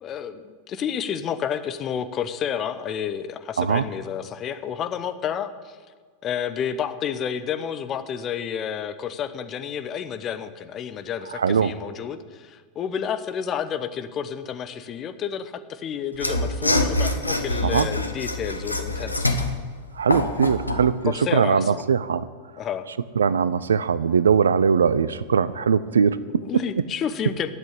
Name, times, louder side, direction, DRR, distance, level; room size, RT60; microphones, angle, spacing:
voice 1, 0.0-5.8 6.2-19.4 21.0-21.8 22.6-22.9 26.4-27.5, left 8 dB, 30° left, 11 dB, 0.9 m, -30 dB
voice 2, 11.4-11.7 17.6-17.9 20.0-20.9 21.3-22.2 23.2-26.6, right 6 dB, 70° right, 17 dB, 0.5 m, -21 dB
Mechanisms / Sawing, 16.1-20.9, left 2 dB, 85° left, 1.0 m, -25 dB
12.0 x 8.1 x 8.6 m, 1.5 s
figure-of-eight pair, 90°, 0 cm